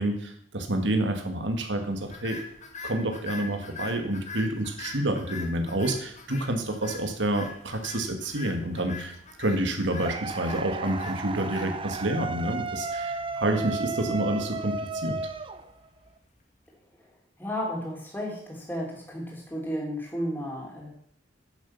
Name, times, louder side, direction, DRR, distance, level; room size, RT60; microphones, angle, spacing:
voice 1, 0.0-2.4 2.8-15.2, right 1 dB, 75° right, 6 dB, 2.0 m, -28 dB
sound 1, 2.0-16.4, left 3 dB, 40° left, 2.0 m, -44 dB
sound 2, 10.0-16.1, right 4 dB, 30° right, 0.7 m, -34 dB
voice 2, 16.9-20.9, equal, 10° left, -2 dB, 3.5 m, -34 dB
10.5 x 7.5 x 7.1 m, 0.66 s
head